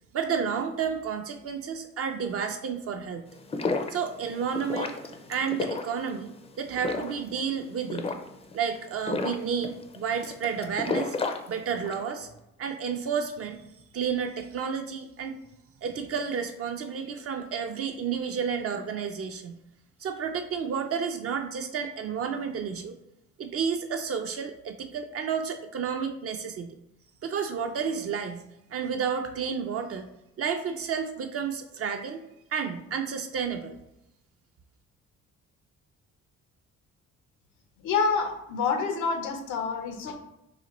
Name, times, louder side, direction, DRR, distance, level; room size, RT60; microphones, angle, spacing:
voice 1, 0.1-3.3 3.9-5.0 5.3-8.1 8.5-11.2 11.5-12.3 12.6-13.6 13.9-15.4 15.8-19.6 20.0-23.0 23.4-26.8 27.2-28.4 28.7-30.1 30.4-32.2 32.5-33.8, right 6 dB, 50° right, 5 dB, 0.4 m, -31 dB
sound 1, 3.3-12.1, left 3 dB, 20° left, 0.4 m, -33 dB
voice 2, 37.8-40.1, left 5 dB, 90° left, 5 dB, 0.7 m, -27 dB
4.0 x 2.5 x 3.0 m, 0.87 s
cardioid pair, 90°, 30 cm